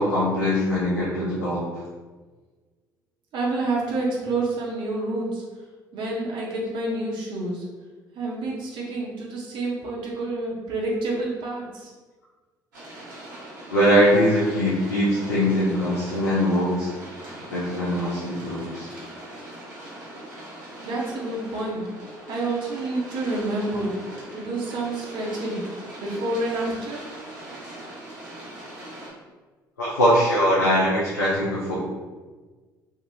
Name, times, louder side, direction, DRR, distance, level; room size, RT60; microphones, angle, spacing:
voice 1, 0.0-1.6 13.7-16.9 17.5-18.9 29.8-31.7, equal, 85° left, -8 dB, 0.7 m, -21 dB
voice 2, 3.3-5.4 5.9-7.6 8.1-11.9 20.8-23.9 24.3-25.6 26.0-27.1, right 2 dB, 50° right, -3 dB, 1.0 m, -28 dB
sound 1, 12.7-29.1, right 1 dB, 80° right, 1.0 m, -41 dB
3.7 x 2.9 x 2.6 m, 1.4 s
figure-of-eight pair, 55°, 10 cm